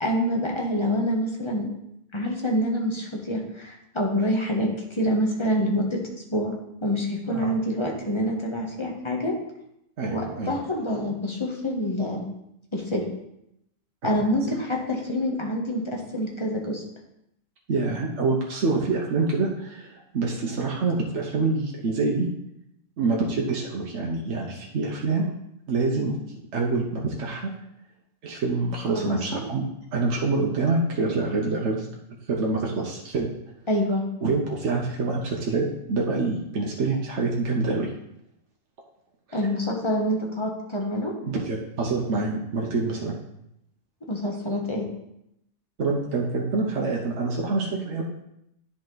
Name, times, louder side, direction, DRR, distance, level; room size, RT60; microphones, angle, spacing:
voice 1, 0.0-1.7 2.1-6.0 6.3-6.5 6.8-9.3 10.1-12.2 12.7-13.0 14.0-16.8 28.9-29.4 33.7-34.0 39.3-41.1 44.1-44.9, equal, 25° left, -1 dB, 1.2 m, -26 dB
voice 2, 7.3-7.6 10.0-10.6 14.0-14.2 17.7-22.3 23.0-25.3 25.7-27.5 28.2-29.7 29.9-31.9 32.3-33.3 34.2-37.9 39.3-39.4 41.2-43.2 45.8-48.0, right 3 dB, 60° right, -1 dB, 1.2 m, -26 dB
10.0 x 4.3 x 3.9 m, 0.81 s
omnidirectional pair, 1.4 m